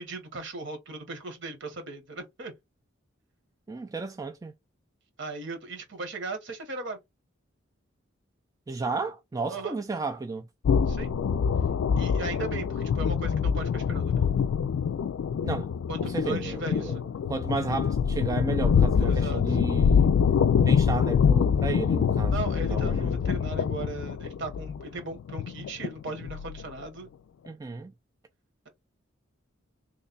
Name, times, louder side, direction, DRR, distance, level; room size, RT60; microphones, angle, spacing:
voice 1, 0.0-2.5 5.2-7.0 9.5-9.8 10.9-11.1 12.0-14.2 15.9-17.0 19.0-19.6 22.2-27.1, right 3 dB, 65° right, 1.2 m, -38 dB
voice 2, 3.7-4.5 8.7-10.5 15.4-15.7 16.0-17.0 17.3-20.1 20.6-23.1 27.5-27.9, right 3 dB, 15° right, 0.3 m, -33 dB
sound 1, 10.6-26.8, left 7 dB, 70° left, 0.3 m, -25 dB
3.2 x 2.2 x 3.9 m
head